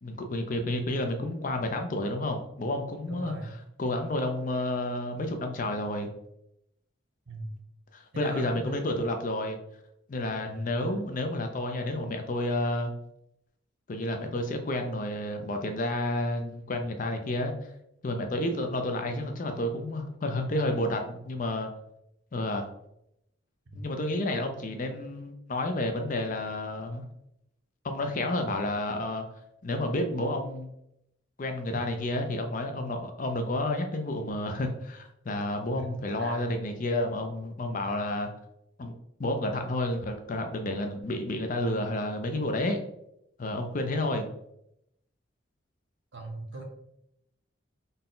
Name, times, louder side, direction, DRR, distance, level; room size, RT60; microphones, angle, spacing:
voice 1, 0.0-3.3 3.8-6.1 7.9-9.6 10.1-12.9 13.9-17.5 18.0-21.7 22.3-22.7 23.7-27.0 27.8-29.2 29.6-30.7 31.4-38.3 38.8-38.9 39.2-42.8 43.4-44.3, left 1 dB, 40° left, 5 dB, 0.4 m, -30 dB
voice 2, 3.1-3.6 7.3-7.6 8.1-9.0 10.4-10.8 23.7-23.8 31.7-31.8 35.7-36.7 37.8-38.1 46.1-46.6, right 2 dB, 65° right, 2 dB, 0.8 m, -40 dB
4.0 x 2.2 x 3.7 m, 0.78 s
head